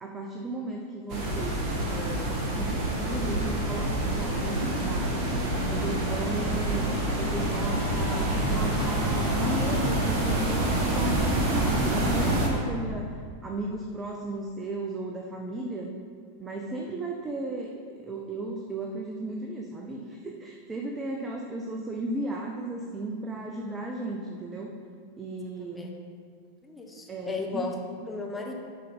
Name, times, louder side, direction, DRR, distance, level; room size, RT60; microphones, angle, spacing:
voice 1, 0.0-5.2 5.7-15.9 16.4-17.7 18.0-24.7 25.2-25.9 27.1-27.7, right 2 dB, 15° right, 1 dB, 0.6 m, -35 dB
sound 1, 1.1-12.5, right 1 dB, 40° right, 1.4 m, -27 dB
voice 2, 25.6-25.9 26.6-27.7 28.1-28.5, left 4 dB, 10° left, 0 dB, 0.9 m, -35 dB
9.9 x 4.0 x 4.0 m, 2.1 s
figure-of-eight pair, 90°, 0 cm